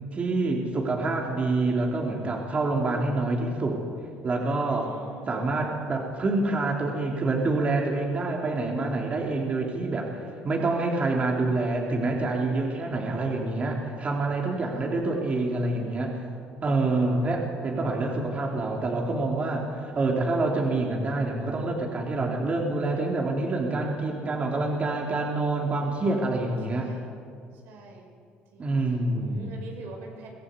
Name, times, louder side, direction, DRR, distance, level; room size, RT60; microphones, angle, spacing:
voice 1, 0.1-3.8 4.2-4.9 5.3-10.1 10.4-16.2 16.6-19.7 19.9-26.9 28.6-29.5, right 2 dB, 35° right, 0 dB, 3.4 m, -27 dB
voice 2, 4.3-5.7 10.6-10.7 14.5-15.0 18.0-19.7 26.7-27.1 27.5-28.1 28.5-30.3, right 2 dB, 75° right, 1 dB, 5.4 m, -47 dB
23.5 x 16.0 x 8.3 m, 2.3 s
supercardioid pair, 90°, 4 cm